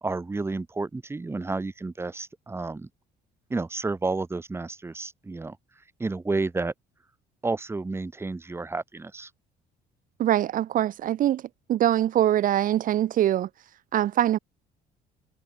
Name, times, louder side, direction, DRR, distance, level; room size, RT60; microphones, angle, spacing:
voice 1, 0.0-2.9 3.5-5.6 6.0-6.7 7.4-9.3, right 3 dB, 15° right, 1.2 m, -31 dB
voice 2, 10.2-11.4 11.7-13.5 13.9-14.4, right 12 dB, 55° right, 0.6 m, -23 dB
cardioid pair, 110°, 17 cm